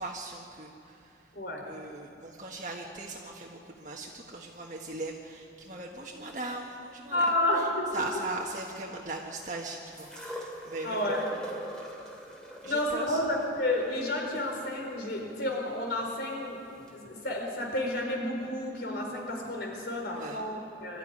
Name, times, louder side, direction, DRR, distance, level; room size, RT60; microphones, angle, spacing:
voice 1, 0.0-1.3 1.6-11.2 12.6-13.2 20.1-20.4, right 2 dB, 45° right, 0 dB, 1.5 m, -39 dB
voice 2, 7.1-7.9 10.8-11.2 12.6-16.6 16.9-21.0, left 1 dB, 60° left, 1 dB, 4.4 m, -31 dB
sound 1, 10.0-16.0 16.9-17.0, equal, 5° left, 2.7 m, -43 dB
23.5 x 13.0 x 9.7 m, 2.6 s
head